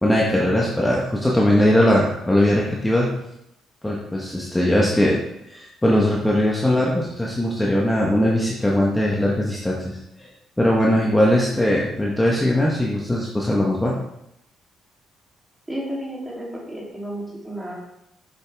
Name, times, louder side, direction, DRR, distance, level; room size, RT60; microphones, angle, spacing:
voice 1, 0.0-3.1 3.8-5.2 5.5-10.3 10.6-14.0, left 1 dB, 10° left, -3 dB, 1.2 m, -20 dB
voice 2, 15.7-17.8, right 1 dB, 15° right, -4 dB, 3.0 m, -32 dB
7.3 x 7.0 x 3.5 m, 0.83 s
cardioid pair, 90°, 0 cm